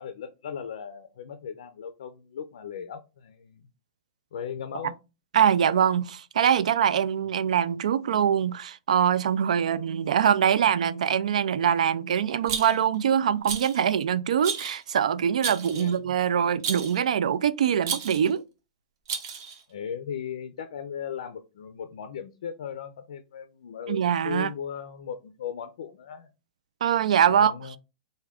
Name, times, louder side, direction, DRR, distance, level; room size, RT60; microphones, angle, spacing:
voice 1, 0.0-3.7 4.3-5.0 15.7-16.2 19.7-26.3 27.3-27.8, left 7 dB, 65° left, 0.4 m, -37 dB
voice 2, 5.3-18.4 23.9-24.5 26.8-27.5, right 8 dB, 85° right, 0.3 m, -23 dB
Rattle, 12.5-13.0 13.4-13.8 14.4-14.8 15.4-16.0 16.6-17.0 17.8-18.3 19.1-19.6, right 6 dB, 30° right, 0.6 m, -32 dB
3.4 x 2.2 x 3.5 m
hypercardioid pair, 175°, 4 cm